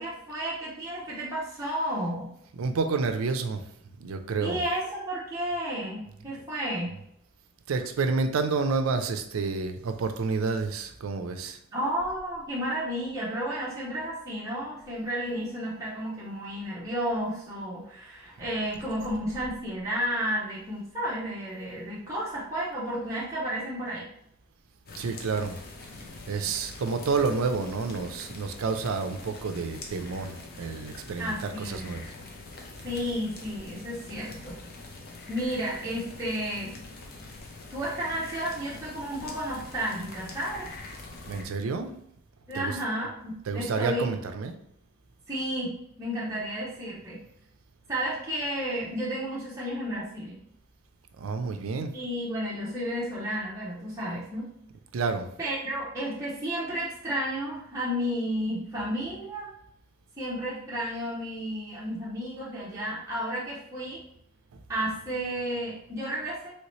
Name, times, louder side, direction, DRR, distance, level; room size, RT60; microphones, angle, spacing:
voice 1, 0.0-2.3 4.4-6.9 11.7-24.1 31.2-31.9 32.8-34.5 35.3-36.8 37.7-40.7 42.5-44.2 45.3-47.2 47.9-50.4 51.9-54.4 55.4-59.5 60.2-64.0 64.7-66.5, equal, 15° right, -8 dB, 0.7 m, -32 dB
voice 2, 2.5-3.6 4.0-4.6 7.7-11.6 25.0-25.6 26.3-32.0 41.3-41.9 42.5-42.8 43.5-44.5 51.2-51.9 54.9-55.3 64.5-64.6, right 4 dB, 75° right, 7 dB, 0.4 m, -29 dB
sound 1, 24.9-41.4, left 3 dB, 45° left, 0.6 m, -44 dB
3.1 x 2.8 x 3.0 m, 0.72 s
head